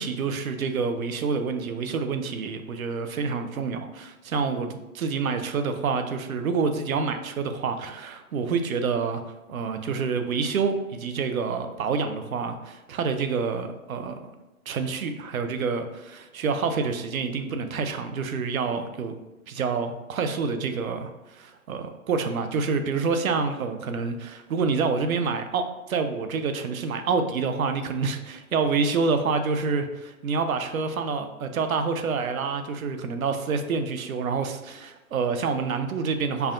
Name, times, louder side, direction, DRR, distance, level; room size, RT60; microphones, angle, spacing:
voice 1, 0.0-9.2 9.5-14.2 14.7-19.2 19.5-36.5, right 5 dB, 70° right, 7 dB, 0.6 m, -27 dB
5.5 x 2.2 x 2.5 m, 1.1 s
hypercardioid pair, 180°, 43 cm